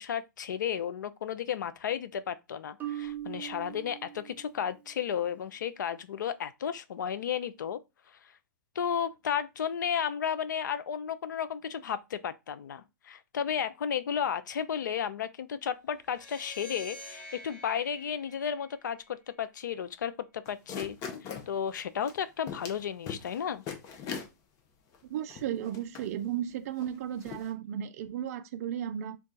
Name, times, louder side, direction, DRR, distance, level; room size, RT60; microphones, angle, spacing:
voice 1, 0.0-7.8 8.8-21.0 21.2-23.6, left 8 dB, 75° left, 0.4 m, -33 dB
Marimba xylophone, 2.8-4.8, right 12 dB, 15° right, 0.6 m, -40 dB
sound 1, 16.0-19.3, left 1 dB, 15° left, 1.4 m, -48 dB
sound 2, 20.5-21.5 22.1-22.2 22.5-22.8 23.1-23.4 23.7-24.3 24.9-25.0 25.3-26.1 26.8-26.9 27.2-27.5, left 7 dB, 35° left, 0.6 m, -39 dB
voice 2, 25.1-29.2, right 10 dB, 55° right, 0.4 m, -34 dB
2.3 x 2.2 x 3.9 m
hypercardioid pair, 120°, 10 cm